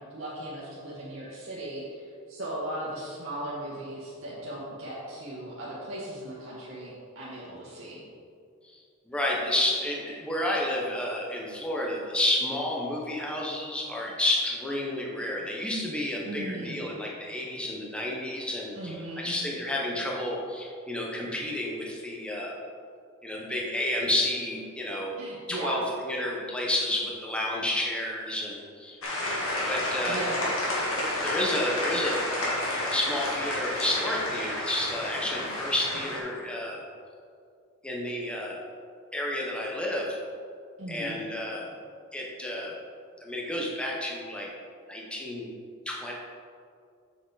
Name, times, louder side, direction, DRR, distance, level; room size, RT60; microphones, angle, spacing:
voice 1, 0.0-8.0 16.2-16.8 18.7-19.4 25.2-25.8 30.1-30.5 40.8-41.1, right 1 dB, 70° right, -8 dB, 1.5 m, -37 dB
voice 2, 9.1-22.6 23.2-25.2 25.5-29.0 29.6-30.2 31.2-36.8 37.8-38.6 39.1-40.2 40.9-41.7 42.1-42.7 43.2-44.5 44.9-45.5 45.9-46.1, left 1 dB, 5° left, -3 dB, 0.9 m, -30 dB
sound 1, 29.0-36.2, left 1 dB, 75° left, 1.9 m, -30 dB
7.5 x 6.3 x 4.0 m, 2.4 s
head